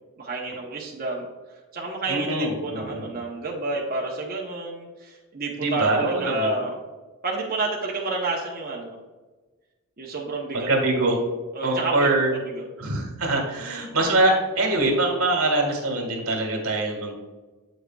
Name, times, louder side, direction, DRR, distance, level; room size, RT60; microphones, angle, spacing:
voice 1, 0.2-6.7 7.2-9.0 10.0-11.0 11.5-12.7, right 3 dB, 40° right, -3 dB, 0.9 m, -30 dB
voice 2, 2.1-3.1 5.6-6.6 10.5-11.2 11.6-12.3 12.8-17.1, right 2 dB, 80° right, 2 dB, 1.8 m, -23 dB
8.1 x 6.4 x 2.3 m, 1.3 s
head